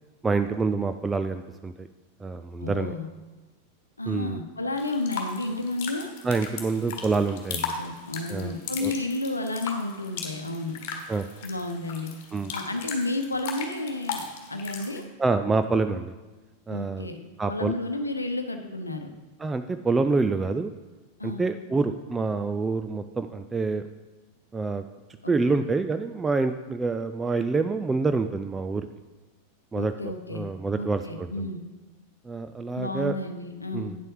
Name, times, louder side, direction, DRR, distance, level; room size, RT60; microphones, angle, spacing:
voice 1, 0.2-1.9 2.2-2.9 4.1-4.4 6.2-7.7 8.3-8.6 8.8-8.9 11.1-11.2 12.3-12.5 15.2-16.1 16.7-17.1 17.4-17.7 19.4-20.7 21.2-23.8 24.5-24.8 25.3-28.9 29.7-31.5 32.2-33.2 33.7-34.0, right 3 dB, 15° right, 9 dB, 0.3 m, -27 dB
voice 2, 2.6-3.1 4.0-6.1 7.5-10.8 11.4-12.2 12.5-15.0 16.7-17.2 17.5-19.1 21.2-21.4 25.2-25.6 29.7-30.5 30.8-31.6 32.7-33.9, left 2 dB, 80° left, 6 dB, 0.8 m, -32 dB
sound 1, 4.8-15.0, left 6 dB, 45° left, 1.6 m, -37 dB
9.3 x 7.5 x 4.7 m, 1.2 s
figure-of-eight pair, 90°, 0 cm